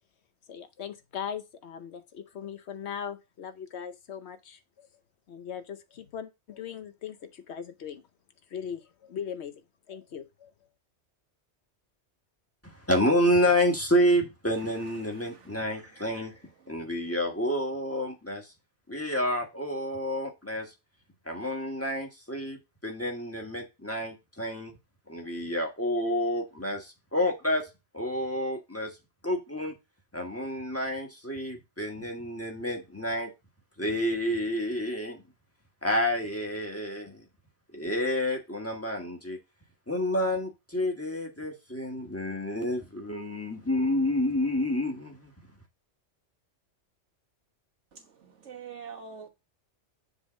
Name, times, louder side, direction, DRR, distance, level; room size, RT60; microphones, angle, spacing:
voice 1, 0.5-4.9 5.3-8.0 8.5-9.5 9.9-10.5, left 8 dB, 70° left, 1.1 m, -39 dB
voice 2, 12.9-16.3 16.7-18.5 18.9-20.7 21.2-22.6 22.8-24.7 25.1-27.7 27.9-28.9 29.2-29.7 30.1-33.3 33.8-35.2 35.8-37.2 37.7-39.4 39.9-45.3, left 1 dB, 10° left, 1.5 m, -29 dB
voice 3, 14.5-16.7 47.9-49.3, right 6 dB, 85° right, 1.8 m, -48 dB
7.0 x 3.7 x 5.0 m
omnidirectional pair, 1.2 m